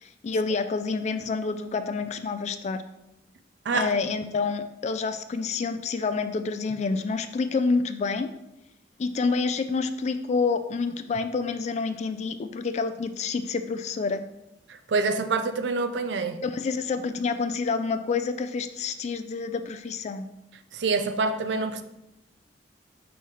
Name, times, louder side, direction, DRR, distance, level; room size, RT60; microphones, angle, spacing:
voice 1, 0.0-2.8 3.7-8.3 9.0-14.2 16.4-20.3, left 4 dB, 40° left, 0.3 m, -28 dB
voice 2, 14.7-16.4 20.7-21.8, right 4 dB, 70° right, 0.5 m, -26 dB
5.5 x 3.2 x 5.5 m
head